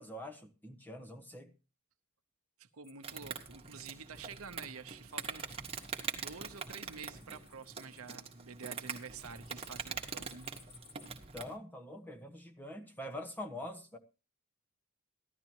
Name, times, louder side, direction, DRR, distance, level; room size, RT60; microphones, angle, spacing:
voice 1, 0.0-1.5 6.2-6.3 11.3-14.0, left 1 dB, 10° left, 1.3 m, -45 dB
voice 2, 2.6-5.6 6.1-10.5, right 5 dB, 75° right, 1.0 m, -49 dB
sound 1, 2.8-4.7 5.0-11.1, left 6 dB, 70° left, 3.2 m, -63 dB
Insect, 3.0-11.5, right 6 dB, 25° right, 1.5 m, -43 dB
15.5 x 12.0 x 3.0 m
head